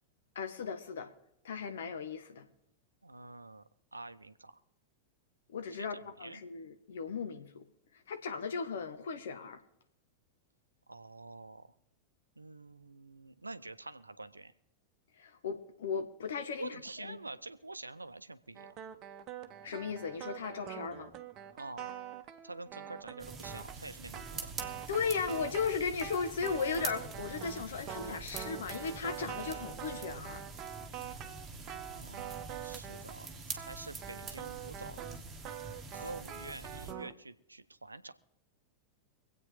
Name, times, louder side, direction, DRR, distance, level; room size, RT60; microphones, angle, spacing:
voice 1, 0.3-1.1 1.4-2.5 5.5-7.7 8.1-9.6 15.2-16.7 17.0-17.2 19.6-21.1 24.9-30.4, left 5 dB, 60° left, 1.3 m, -36 dB
voice 2, 3.0-3.6 3.9-4.6 5.8-6.4 10.9-11.7 12.4-14.5 16.5-18.7 21.5-22.0 22.4-24.5 31.9-35.1 35.9-38.2, right 2 dB, 80° right, 0.6 m, -47 dB
sound 1, 18.6-33.3 33.5-37.1, right 10 dB, 35° right, 0.9 m, -45 dB
sound 2, 23.2-36.9, right 3 dB, 15° right, 1.8 m, -45 dB
25.0 x 8.5 x 3.5 m
figure-of-eight pair, 90°, 0 cm